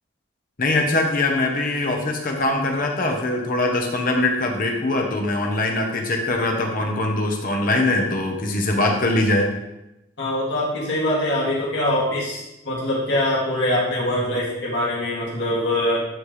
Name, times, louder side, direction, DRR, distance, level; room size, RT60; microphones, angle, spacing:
voice 1, 0.6-9.5, left 2 dB, 45° left, 1 dB, 1.1 m, -22 dB
voice 2, 10.2-16.0, left 1 dB, 65° left, -6 dB, 2.8 m, -23 dB
12.0 x 4.3 x 3.4 m, 0.93 s
head